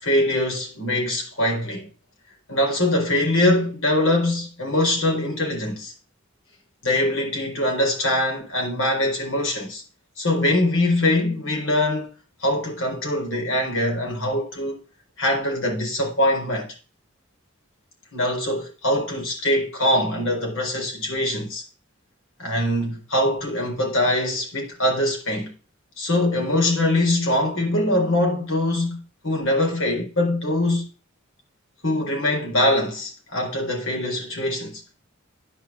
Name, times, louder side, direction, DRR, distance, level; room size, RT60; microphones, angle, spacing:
voice 1, 0.0-1.9 2.5-5.9 6.8-9.8 10.2-12.1 12.4-14.8 15.2-16.7 18.1-21.6 22.4-25.5 26.0-30.8 31.8-34.8, left 1 dB, 75° left, 4.5 m, -23 dB
10.0 x 5.0 x 7.4 m
head